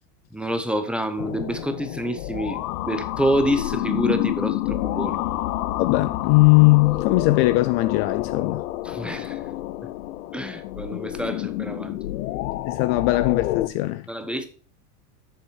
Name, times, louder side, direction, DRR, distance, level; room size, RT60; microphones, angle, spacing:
voice 1, 0.3-5.2 8.8-9.4 10.3-12.0 14.1-14.5, right 1 dB, ahead, 0.7 m, -27 dB
sound 1, 1.2-13.7, left 15 dB, 75° left, 0.8 m, -29 dB
voice 2, 5.8-8.6 12.7-14.1, left 20 dB, 45° left, 0.4 m, -19 dB
7.2 x 6.7 x 6.3 m
supercardioid pair, 135°, 45 cm